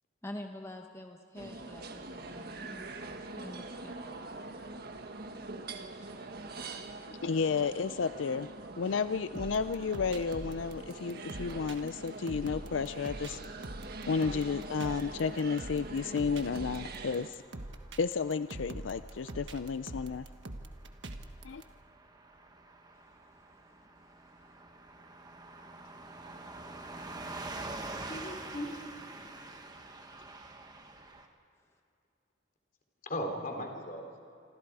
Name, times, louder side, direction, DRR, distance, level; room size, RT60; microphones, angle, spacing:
voice 1, 0.2-4.5 23.0-23.3 23.7-23.8 24.5-24.6, left 1 dB, 15° left, 3 dB, 1.1 m, -47 dB
sound 1, 1.4-17.3, right 3 dB, 55° right, 1.6 m, -44 dB
voice 2, 7.1-8.5 8.8-13.4 14.1-17.4 18.0-20.3 21.4-21.6, left 5 dB, 90° left, 13 dB, 0.5 m, -32 dB
sound 2, 9.3-21.6, right 1 dB, 70° right, 1.5 m, -44 dB
Car passing by / Truck, 16.9-31.3, right 2 dB, 20° right, 1.6 m, -47 dB
voice 3, 28.1-28.8 33.1-34.2, equal, 45° left, 3 dB, 3.6 m, -37 dB
27.5 x 26.0 x 4.8 m, 2.6 s
head